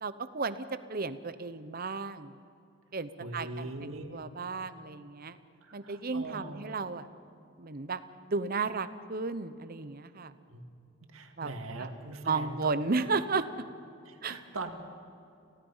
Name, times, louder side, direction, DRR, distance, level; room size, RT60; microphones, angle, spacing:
voice 1, 0.0-2.3 2.9-5.4 5.7-7.1 7.6-8.0 8.3-10.3 11.4-11.5 11.8-11.9 12.2-13.5 14.2-14.4, right 4 dB, 45° right, 13 dB, 0.8 m, -34 dB
voice 2, 3.2-4.1 5.6-6.7 10.5-10.7 11.1-12.8 14.1-14.7, right 2 dB, 75° right, 5 dB, 2.1 m, -41 dB
28.5 x 16.5 x 5.6 m, 2.6 s
head